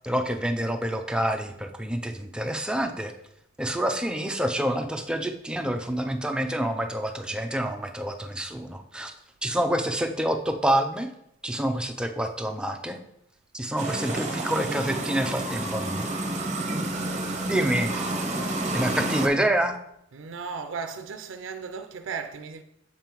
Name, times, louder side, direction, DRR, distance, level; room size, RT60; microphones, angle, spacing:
voice 1, 0.0-3.1 3.6-9.1 9.4-11.1 11.4-13.0 13.5-16.1 17.5-18.0 18.7-19.8, right 1 dB, 5° right, 0.5 m, -27 dB
sound 1, 13.8-19.3, right 2 dB, 40° right, 0.7 m, -29 dB
voice 2, 20.1-22.6, right 5 dB, 90° right, 0.4 m, -35 dB
7.5 x 5.3 x 3.0 m
head